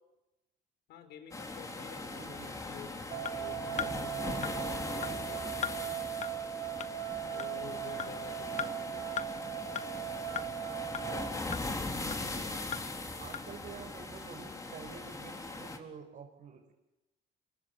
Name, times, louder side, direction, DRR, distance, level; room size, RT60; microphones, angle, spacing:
voice 1, 0.9-6.0 7.3-9.8, left 8 dB, 80° left, 9 dB, 4.9 m, -51 dB
sound 1, 1.3-15.8, left 2 dB, 20° left, 4.1 m, -40 dB
voice 2, 2.2-2.5 7.6-8.1 12.0-12.6 13.2-16.7, right 6 dB, 55° right, 0 dB, 5.4 m, -49 dB
sound 2, 3.1-11.3, right 13 dB, 90° right, 3.2 m, -39 dB
sound 3, 3.2-3.3 3.8-3.9 4.4-4.5 5.0-5.1 5.6-5.8 6.2-6.3 6.8-6.9 7.4-7.5 8.0-8.1 8.6-8.7 9.2-9.3 9.8-9.9 10.4-10.5 10.9-11.0 11.5-11.6 12.1-12.2 12.7-12.8 13.3-13.4, left 8 dB, 45° left, 1.1 m, -36 dB
26.5 x 23.5 x 8.4 m, 0.97 s
cardioid pair, 110°, 17 cm